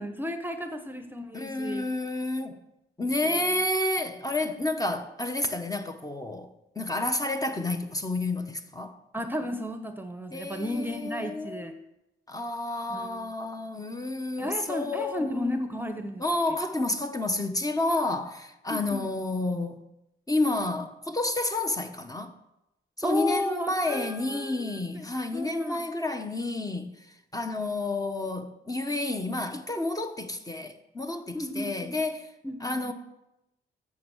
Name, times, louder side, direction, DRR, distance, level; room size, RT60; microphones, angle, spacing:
voice 1, 0.0-1.9 3.2-3.6 9.1-11.7 12.9-13.3 14.4-16.2 18.7-19.0 23.0-25.0 25.3-25.8 31.3-31.9 32.4-32.9, left 1 dB, 10° right, 0.9 m, -34 dB
voice 2, 1.3-2.6 3.0-6.5 6.7-8.9 10.3-11.8 12.3-15.9 16.2-19.8 20.3-22.3 23.0-26.9 27.3-32.3 32.6-32.9, left 2 dB, 15° left, 1.0 m, -30 dB
7.2 x 7.2 x 6.2 m
cardioid pair, 70°, 21 cm